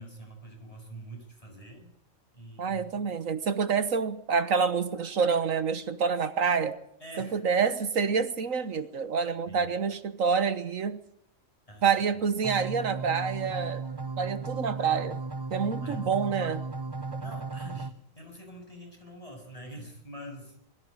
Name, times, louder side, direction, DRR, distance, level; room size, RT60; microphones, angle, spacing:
voice 1, 0.0-1.9 2.3-3.0 7.0-7.4 9.5-9.7 11.7-11.9 15.8-16.0 17.0-20.6, right 1 dB, 25° left, 1 dB, 7.1 m, -45 dB
voice 2, 2.6-6.7 7.2-11.0 11.8-13.8 14.2-15.2 15.5-16.6, right 6 dB, 75° right, 11 dB, 1.6 m, -27 dB
sound 1, 12.4-17.9, right 4 dB, 20° right, 0.7 m, -35 dB
21.5 x 14.0 x 9.7 m, 0.75 s
omnidirectional pair, 1.4 m